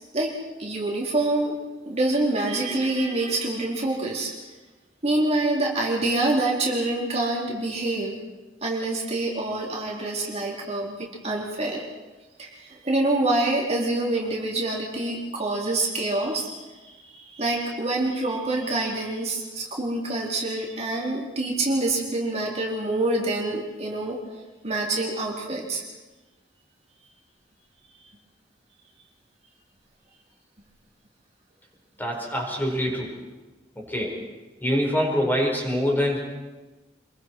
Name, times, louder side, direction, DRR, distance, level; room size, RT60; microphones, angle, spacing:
voice 1, 0.6-1.6 1.9-4.3 5.0-8.2 8.6-11.8 12.4-16.5 17.0-24.2 24.6-25.8 27.9-28.1, right 2 dB, 35° right, -2 dB, 3.8 m, -26 dB
voice 2, 32.0-33.1 33.7-34.2 34.6-36.2, equal, 10° left, -1 dB, 4.9 m, -25 dB
27.0 x 22.5 x 4.7 m, 1.2 s
head